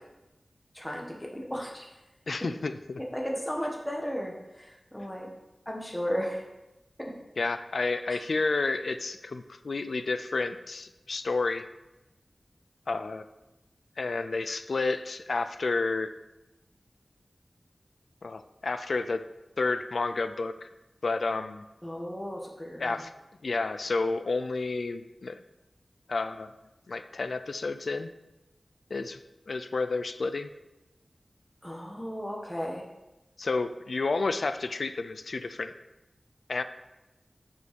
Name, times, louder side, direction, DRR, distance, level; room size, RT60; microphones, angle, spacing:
voice 1, 0.7-1.9 3.1-5.3 5.6-6.4 7.0-7.1 21.8-23.0 31.6-32.8, equal, 10° left, -1 dB, 1.6 m, -34 dB
voice 2, 2.3-3.0 7.4-11.7 12.9-13.3 14.0-16.1 18.2-19.2 19.6-20.7 21.0-21.6 22.8-23.1 23.4-25.4 26.1-26.5 26.9-28.1 28.9-29.2 29.5-30.5 33.4-35.7 36.5-36.6, left 3 dB, 75° left, 11 dB, 0.4 m, -30 dB
7.9 x 5.4 x 5.3 m, 1.0 s
wide cardioid pair, 70°, 0 cm